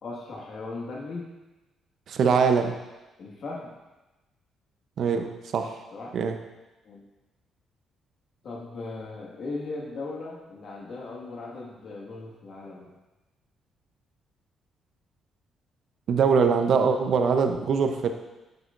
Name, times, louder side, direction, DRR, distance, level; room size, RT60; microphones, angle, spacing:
voice 1, 0.0-1.3 3.2-3.7 5.9-6.1 6.8-7.0 8.4-12.9, left 3 dB, 60° left, -2 dB, 1.9 m, -38 dB
voice 2, 2.1-2.7 5.0-5.8 6.1-6.4 16.1-18.1, right 6 dB, 65° right, 6 dB, 0.8 m, -22 dB
9.3 x 7.9 x 2.6 m, 1.1 s
cardioid pair, 90°, 0 cm